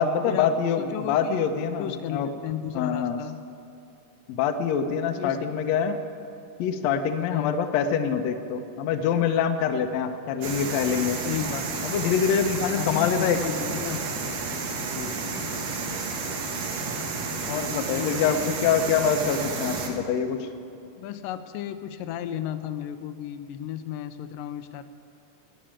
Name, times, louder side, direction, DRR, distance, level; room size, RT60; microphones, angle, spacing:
voice 1, 0.0-2.3 2.8-3.2 4.3-6.0 6.6-11.2 11.8-13.4 15.0-15.4 17.5-20.5, left 7 dB, 70° left, 7 dB, 1.8 m, -25 dB
voice 2, 0.8-1.5 1.8-3.4 5.2-5.5 7.3-7.6 11.2-11.9 12.6-14.3 17.4-18.5 21.0-24.9, left 10 dB, 90° left, 10 dB, 2.3 m, -34 dB
sound 1, 10.4-19.9, right 4 dB, 60° right, 2.3 m, -31 dB
19.0 x 6.7 x 8.8 m, 2.7 s
omnidirectional pair, 3.8 m